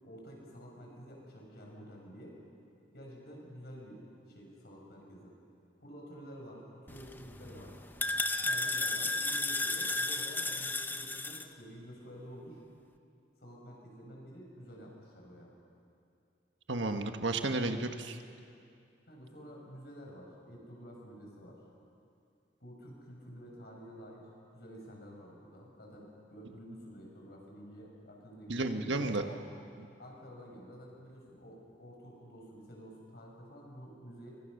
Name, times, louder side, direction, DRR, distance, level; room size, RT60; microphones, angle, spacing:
voice 1, 0.0-2.4 2.9-5.3 5.8-7.8 8.4-12.6 13.4-15.5 19.1-21.6 22.6-24.3 24.5-29.4 30.0-34.3, equal, 60° left, -1 dB, 6.6 m, -50 dB
sound 1, 6.9-11.4, left 2 dB, 10° left, 0.8 m, -34 dB
voice 2, 16.7-18.2 28.5-29.3, right 2 dB, 85° right, 6 dB, 1.5 m, -32 dB
24.5 x 23.5 x 6.6 m, 2.4 s
head